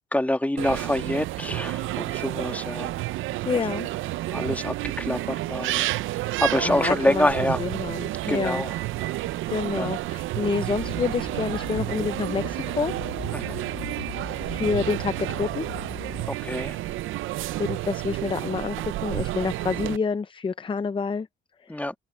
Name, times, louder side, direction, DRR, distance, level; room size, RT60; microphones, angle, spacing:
voice 1, 0.1-2.9 3.5-3.8 4.3-5.9 6.4-7.6 8.3-8.7 9.0-9.2 9.8-9.9 13.3-13.6 16.3-16.8 21.7-21.9, left 1 dB, 5° left, 1.9 m, -26 dB
sound 1, 0.6-20.0, right 16 dB, 80° right, 0.5 m, -30 dB
voice 2, 3.5-3.9 6.5-7.3 7.6-8.6 9.5-12.9 14.4-15.7 17.6-21.3, left 5 dB, 25° left, 0.6 m, -28 dB
sound 2, 10.7-16.3, left 12 dB, 80° left, 2.9 m, -40 dB
cardioid pair, 90°, 20 cm